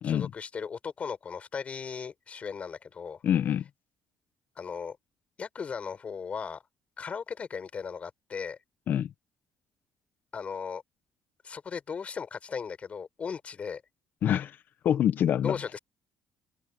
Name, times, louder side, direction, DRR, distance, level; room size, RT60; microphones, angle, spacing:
voice 1, 0.0-3.2 4.6-5.0 5.4-6.6 7.0-8.6 10.3-10.8 11.4-13.8 14.9-15.0 15.4-15.8, left 6 dB, 35° left, 4.2 m, -37 dB
voice 2, 3.2-3.6 8.9-9.1 14.2-14.6 14.8-15.6, left 10 dB, 60° left, 0.9 m, -25 dB
cardioid pair, 115°, 4 cm